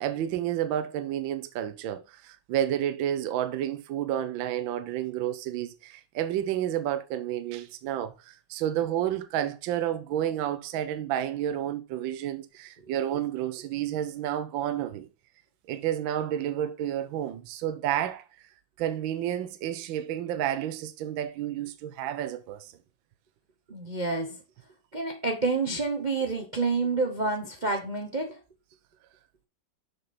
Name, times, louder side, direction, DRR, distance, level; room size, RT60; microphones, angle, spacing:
voice 1, 0.0-15.1 15.7-18.2 18.8-22.7, right 11 dB, 75° right, 1.4 m, -30 dB
voice 2, 23.7-24.4 24.9-28.4, right 3 dB, 40° right, 0.6 m, -28 dB
6.7 x 5.4 x 4.2 m
omnidirectional pair, 2.3 m